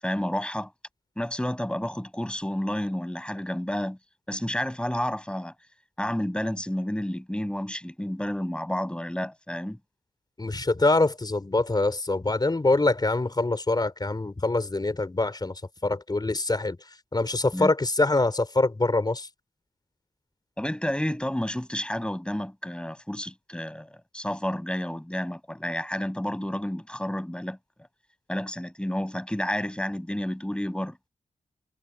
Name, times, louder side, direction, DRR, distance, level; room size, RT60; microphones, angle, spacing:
voice 1, 0.0-0.7 1.2-4.0 4.3-5.5 6.0-9.8 17.5-17.7 20.6-27.6 28.3-31.0, left 1 dB, 5° left, 7.6 m, -30 dB
voice 2, 10.4-16.8 17.1-19.3, left 2 dB, 30° left, 4.6 m, -24 dB
cardioid pair, 75°, 14 cm